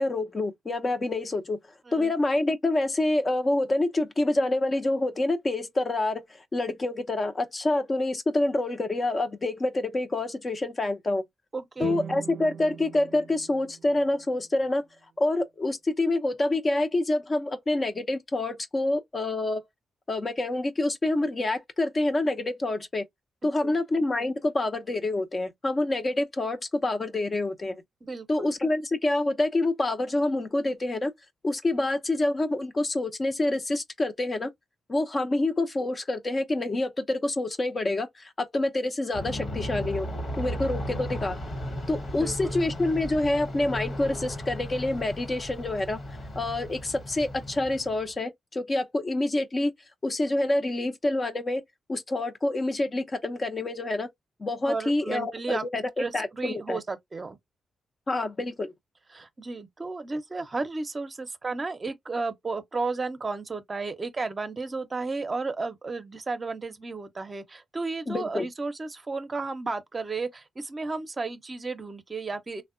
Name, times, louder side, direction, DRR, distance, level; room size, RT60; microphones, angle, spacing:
voice 1, 0.0-1.6 1.9-11.2 11.8-14.8 15.2-19.6 20.1-23.0 23.4-27.8 28.3-31.1 31.4-34.5 34.9-40.1 40.4-41.4 41.9-46.0 46.4-49.7 50.0-51.6 51.9-54.1 54.4-56.8 58.1-58.7 68.1-68.5, left 2 dB, 35° left, 0.6 m, -27 dB
voice 2, 11.5-12.0 23.6-23.8 28.0-28.5 42.1-42.5 54.6-55.7 56.0-57.4 59.1-72.6, right 3 dB, 35° right, 0.6 m, -33 dB
sound 1, 11.8-15.0, right 7 dB, 75° right, 0.4 m, -42 dB
Aircraft, 39.1-48.1, equal, 50° left, 1.2 m, -35 dB
3.4 x 2.1 x 2.5 m
cardioid pair, 80°, 0 cm